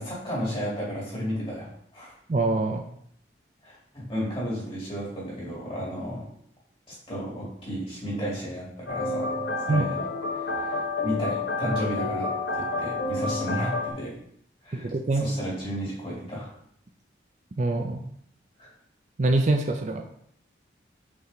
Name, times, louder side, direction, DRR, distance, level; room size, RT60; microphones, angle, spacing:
voice 1, 0.0-2.1 3.6-6.2 6.9-10.0 10.3-14.1 14.6-16.5 18.6-18.7, equal, 30° left, -6 dB, 2.6 m, -33 dB
voice 2, 2.3-2.8 9.7-9.9 14.7-15.2 17.6-18.0 19.2-20.0, right 2 dB, 40° right, 5 dB, 0.4 m, -24 dB
sound 1, 8.9-13.9, left 3 dB, 80° left, 0.8 m, -29 dB
5.5 x 4.8 x 3.8 m, 0.67 s
head